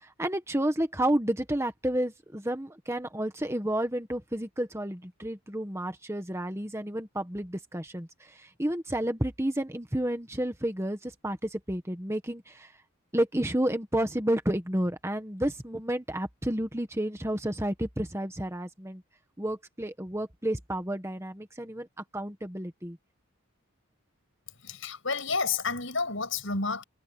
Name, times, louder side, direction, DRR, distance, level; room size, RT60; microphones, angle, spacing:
voice 1, 0.0-12.7 13.1-19.0 19.4-21.9 22.1-23.0, right 1 dB, 10° right, 1.6 m, -31 dB
voice 2, 24.6-26.8, left 4 dB, 60° left, 6.9 m, -30 dB
head